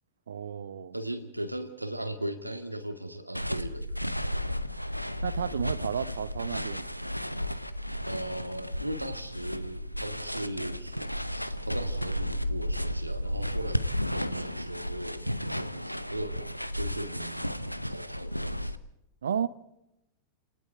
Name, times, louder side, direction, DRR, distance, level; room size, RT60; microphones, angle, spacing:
voice 1, 0.3-0.9 5.2-6.9 19.2-19.5, right 8 dB, 65° right, 0.8 m, -32 dB
voice 2, 0.9-3.9 8.1-15.3 15.6-16.4 16.8-18.8, right 1 dB, 85° right, 1.9 m, -38 dB
sound 1, 3.3-18.8, equal, 90° left, 0.8 m, -33 dB
29.5 x 19.5 x 4.7 m
figure-of-eight pair, 90°, 0 cm